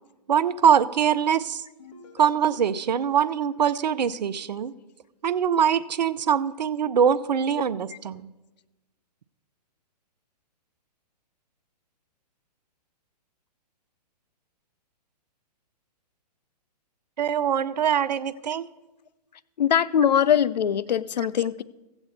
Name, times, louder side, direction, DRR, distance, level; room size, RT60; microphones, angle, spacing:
voice 1, 0.3-1.6 2.2-4.7 5.2-8.2 17.2-18.7, right 8 dB, 75° right, 0.6 m, -23 dB
sound 1, 1.8-4.7, left 3 dB, 55° left, 2.4 m, -51 dB
voice 2, 19.6-21.6, left 9 dB, 80° left, 0.5 m, -22 dB
15.0 x 8.1 x 4.1 m
hypercardioid pair, 125°, 21 cm